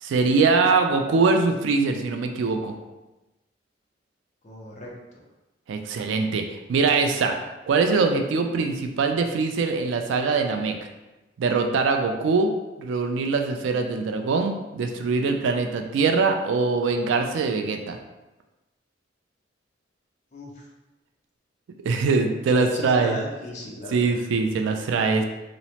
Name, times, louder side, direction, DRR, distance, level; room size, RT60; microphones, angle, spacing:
voice 1, 0.0-2.7 5.7-7.4 7.7-10.8 11.4-12.5 12.8-18.0 21.8-23.2 23.9-25.2, right 4 dB, 75° right, 5 dB, 0.3 m, -23 dB
voice 2, 4.4-5.2 20.3-20.7 22.6-24.3, left 1 dB, 40° left, -2 dB, 0.5 m, -37 dB
2.9 x 2.0 x 2.7 m, 1.0 s
head